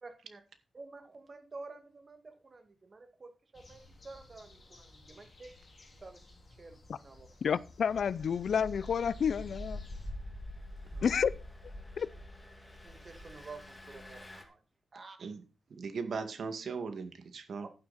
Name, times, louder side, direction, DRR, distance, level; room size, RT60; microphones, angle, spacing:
voice 1, 0.0-0.4 0.7-5.5 6.0-7.3 10.9-11.1 12.8-14.6 14.9-15.2 17.6-17.7, right 3 dB, 35° right, 2.0 m, -50 dB
sound 1, 3.5-10.1, left 2 dB, 35° left, 4.1 m, -57 dB
voice 2, 7.4-9.8 11.0-11.3 12.0-12.1, left 7 dB, 65° left, 0.5 m, -30 dB
Engine, 7.9-14.4, left 1 dB, 15° left, 2.3 m, -45 dB
voice 3, 15.7-17.7, right 5 dB, 65° right, 2.0 m, -38 dB
11.0 x 9.7 x 4.2 m
wide cardioid pair, 125°, 0 cm